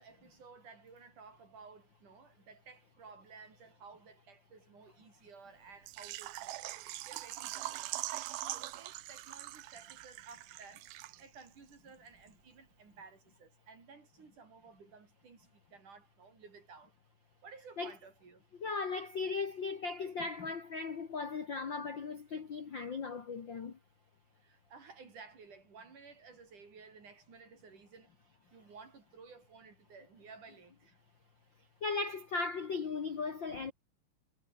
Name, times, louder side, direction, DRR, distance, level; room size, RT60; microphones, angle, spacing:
voice 1, 0.0-6.6 7.1-10.9 11.2-16.9 17.4-18.4 24.4-28.1 28.5-31.0, right 5 dB, 50° right, 5.8 m, -55 dB
Water / Liquid, 5.9-11.5 11.7-11.8 12.3-12.4, right 16 dB, 75° right, 2.7 m, -42 dB
voice 2, 18.6-23.8 31.8-33.7, left 4 dB, 45° left, 1.5 m, -37 dB
omnidirectional pair, 4.7 m